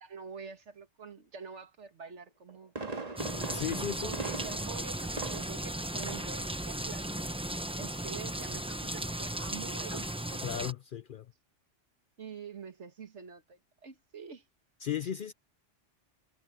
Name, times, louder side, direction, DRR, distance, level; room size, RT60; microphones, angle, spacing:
voice 1, 0.0-2.7 4.0-7.3 7.7-10.6 12.2-14.4, right 6 dB, 70° right, 2.0 m, -46 dB
Fireworks, 2.3-5.7 6.0-6.4 6.7-6.8, right 3 dB, 30° right, 1.8 m, -40 dB
sound 1, 3.2-10.7, right 1 dB, 5° right, 0.6 m, -36 dB
voice 2, 3.5-4.1 10.4-11.3 14.8-15.3, left 9 dB, 60° left, 0.6 m, -35 dB
sound 2, 4.5-10.2, left 3 dB, 40° left, 1.9 m, -59 dB
omnidirectional pair, 1.2 m